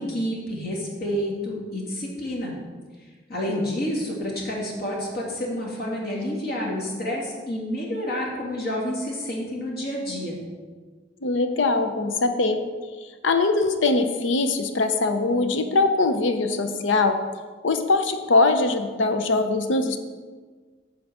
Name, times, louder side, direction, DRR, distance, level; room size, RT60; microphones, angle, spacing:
voice 1, 0.0-2.5 3.3-10.4, equal, 55° left, -3 dB, 2.2 m, -29 dB
voice 2, 11.2-12.6 13.2-17.2 17.6-20.0, left 3 dB, 85° left, 7 dB, 0.7 m, -22 dB
8.8 x 3.9 x 7.1 m, 1.5 s
head